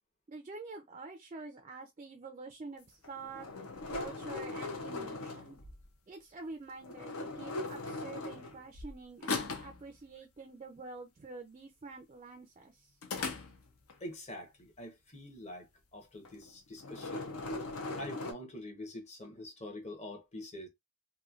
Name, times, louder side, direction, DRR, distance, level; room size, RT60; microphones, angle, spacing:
voice 1, 0.3-3.5 3.9-5.6 6.1-13.0, right 3 dB, 30° right, 0.4 m, -47 dB
sound 1, 3.0-5.9 6.8-8.9 9.2-9.8 13.0-13.9 16.2-16.5 16.8-18.3, left 3 dB, 70° left, 0.6 m, -39 dB
voice 2, 14.0-17.4 18.0-20.7, left 1 dB, 30° left, 0.9 m, -45 dB
3.1 x 2.2 x 2.4 m
head